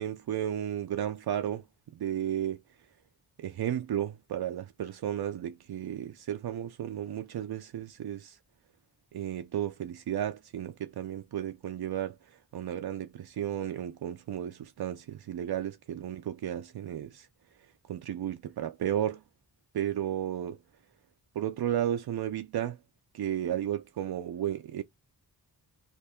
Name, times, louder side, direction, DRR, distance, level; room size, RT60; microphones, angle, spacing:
voice 1, 0.0-1.6 1.9-2.6 3.4-8.4 9.1-12.2 12.5-17.3 17.9-19.2 19.7-20.6 21.4-22.8 23.1-24.8, right 10 dB, 70° right, 0.5 m, -33 dB
3.4 x 2.8 x 4.2 m
wide cardioid pair, 100°, 39 cm